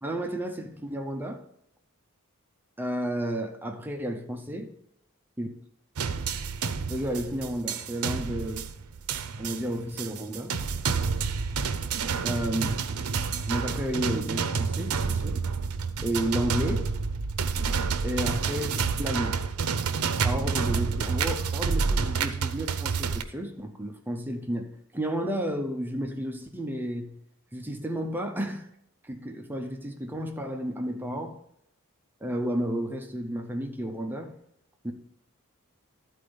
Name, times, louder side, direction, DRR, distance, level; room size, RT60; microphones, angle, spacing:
voice 1, 0.0-1.4 2.8-4.7 5.4-5.5 6.9-8.6 9.4-10.6 12.2-12.8 13.5-15.4 16.0-16.9 18.0-18.7 19.0-19.4 20.2-27.1 27.5-28.7 29.0-31.4 32.2-34.3 34.8-34.9, equal, 10° right, 0.6 m, -32 dB
sound 1, 6.0-23.2, right 5 dB, 75° right, 0.6 m, -29 dB
12.0 x 4.4 x 5.1 m
head